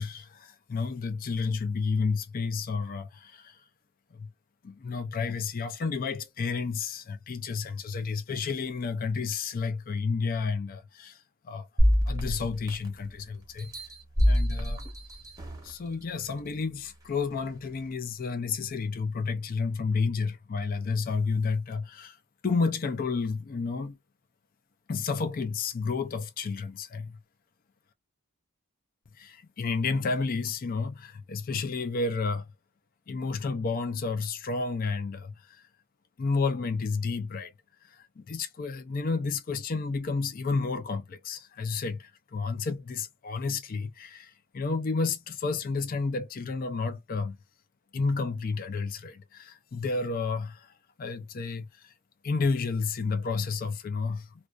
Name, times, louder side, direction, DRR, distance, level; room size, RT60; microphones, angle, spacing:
voice 1, 0.0-3.6 4.1-4.3 4.6-11.7 12.1-13.7 14.3-14.8 15.6-22.2 22.4-24.0 24.9-27.2 29.2-32.5 33.1-35.6 36.2-37.5 37.9-47.4 47.9-50.7 51.0-51.9 52.2-54.3, left 4 dB, 45° left, 0.4 m, -31 dB
sound 1, 11.8-13.1 13.6-15.7 16.3-16.4, equal, 15° right, 0.9 m, -26 dB
2.5 x 2.2 x 2.2 m
head